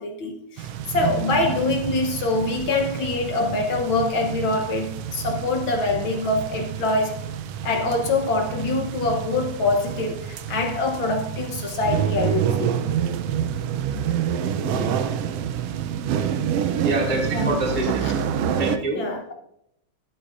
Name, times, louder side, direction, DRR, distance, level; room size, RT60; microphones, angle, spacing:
voice 1, 0.0-7.3 7.6-12.7 17.3-17.6 18.0-18.1 18.9-19.3, left 3 dB, 65° left, 2 dB, 1.3 m, -24 dB
sound 1, 0.6-18.8, right 9 dB, 85° right, 1.4 m, -28 dB
voice 2, 14.6-14.9 16.8-18.2 18.6-19.0, right 1 dB, 5° left, -1 dB, 1.2 m, -26 dB
12.0 x 11.5 x 2.5 m, 0.75 s
omnidirectional pair, 3.4 m